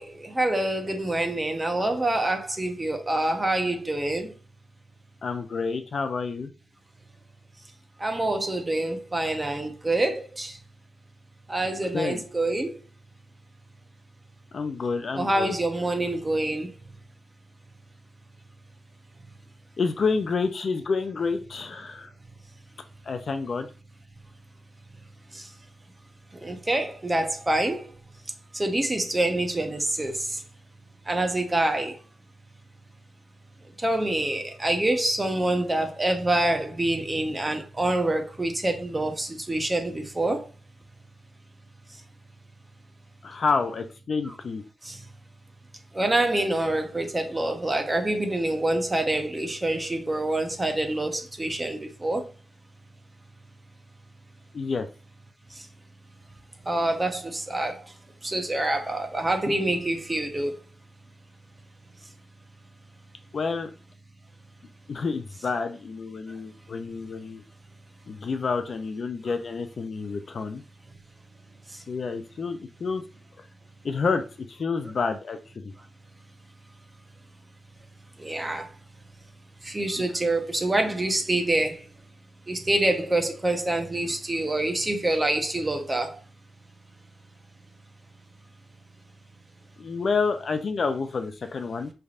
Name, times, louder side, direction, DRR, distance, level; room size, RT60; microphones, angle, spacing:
voice 1, 0.0-4.3 8.0-10.6 11.5-12.8 15.1-16.7 25.3-25.5 26.4-27.9 28.5-30.4 31.1-32.0 33.8-40.5 44.3-44.4 44.8-45.1 45.9-52.2 55.5-55.6 56.6-57.8 58.2-60.6 71.7-71.8 78.2-78.7 79.6-81.8 82.5-86.2, right 1 dB, 15° right, 0.7 m, -26 dB
voice 2, 5.2-6.5 11.9-12.2 14.5-15.5 19.8-22.1 23.1-23.7 43.2-44.6 54.5-54.9 63.3-63.7 64.9-67.4 68.1-70.6 71.9-73.0 73.8-74.2 74.5-75.7 80.0-80.1 89.8-91.9, left 4 dB, 45° left, 0.4 m, -29 dB
5.3 x 3.3 x 2.4 m
wide cardioid pair, 165°, 0 cm